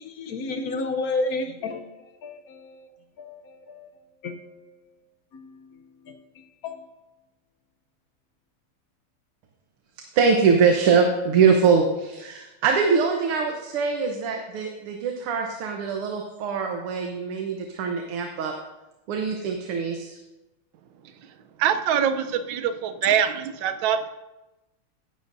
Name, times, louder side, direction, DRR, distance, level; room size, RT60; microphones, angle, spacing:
voice 1, 0.0-2.9 3.2-3.9 4.2-4.9 5.3-7.0, left 3 dB, 60° left, 1.0 m, -33 dB
voice 2, 10.1-18.5 19.1-20.2, right 5 dB, 90° right, 1.9 m, -23 dB
voice 3, 21.6-24.1, right 8 dB, 70° right, 1.4 m, -24 dB
15.5 x 11.0 x 2.7 m
omnidirectional pair, 2.4 m